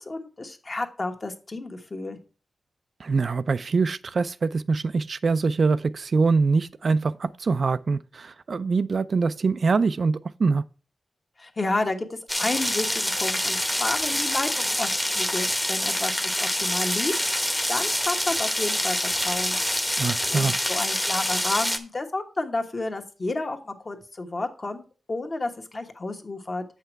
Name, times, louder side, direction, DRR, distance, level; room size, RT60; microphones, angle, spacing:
voice 1, 0.0-2.2 11.4-14.9 15.2-19.6 20.3-24.8 25.1-26.6, left 2 dB, 35° left, 1.2 m, -31 dB
voice 2, 3.0-10.6 20.0-20.5, right 4 dB, 60° right, 0.3 m, -24 dB
sound 1, 12.3-21.8, left 1 dB, 10° left, 0.9 m, -26 dB
8.1 x 5.7 x 4.5 m
wide cardioid pair, 100°, 0 cm